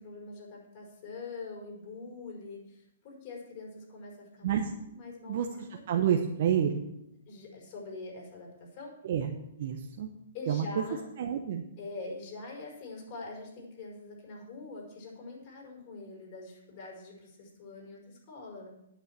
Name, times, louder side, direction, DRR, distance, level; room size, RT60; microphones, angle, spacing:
voice 1, 0.0-5.8 7.3-9.0 10.3-11.0 11.8-18.7, left 3 dB, 45° left, -1 dB, 5.4 m, -44 dB
voice 2, 5.9-6.8 9.0-10.1 10.5-10.8 11.2-11.6, right 8 dB, 55° right, 3 dB, 1.0 m, -29 dB
9.2 x 6.8 x 7.5 m, 0.82 s
hypercardioid pair, 130°, 0 cm